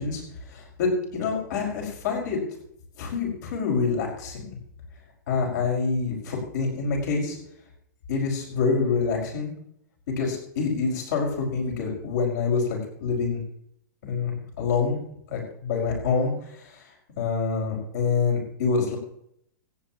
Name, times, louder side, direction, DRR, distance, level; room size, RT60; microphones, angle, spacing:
voice 1, 0.0-2.4 3.0-4.6 5.3-7.4 8.1-9.5 10.1-13.4 14.0-15.0 15.3-16.9 17.2-19.0, left 4 dB, 65° left, -1 dB, 5.5 m, -26 dB
26.0 x 9.3 x 3.0 m, 0.71 s
hypercardioid pair, 130°, 10 cm